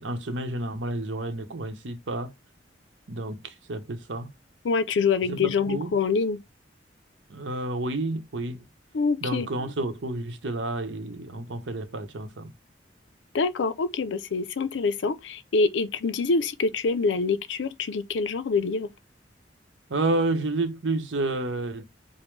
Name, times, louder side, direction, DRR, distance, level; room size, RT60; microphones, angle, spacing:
voice 1, 0.0-2.3 3.1-4.3 5.3-5.9 7.3-8.6 9.2-12.5 19.9-21.8, right 2 dB, 90° right, 0.8 m, -30 dB
voice 2, 4.6-6.4 8.9-9.5 13.3-18.9, left 4 dB, 80° left, 0.5 m, -25 dB
5.2 x 2.1 x 3.2 m
head